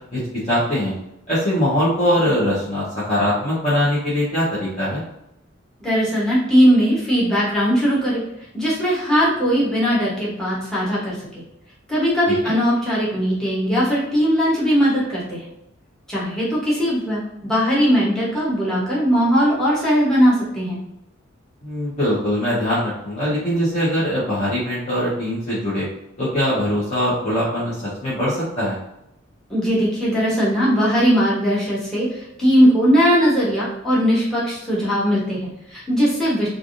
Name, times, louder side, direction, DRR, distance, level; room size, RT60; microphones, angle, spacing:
voice 1, 0.5-0.9 1.3-5.0 12.4-12.5 21.6-25.9 26.2-28.8, equal, 35° left, -10 dB, 0.9 m, -22 dB
voice 2, 5.8-8.2 8.5-11.2 11.9-15.5 16.1-20.8 29.5-36.5, equal, 5° left, -7 dB, 0.9 m, -19 dB
3.3 x 2.4 x 2.5 m, 0.86 s
head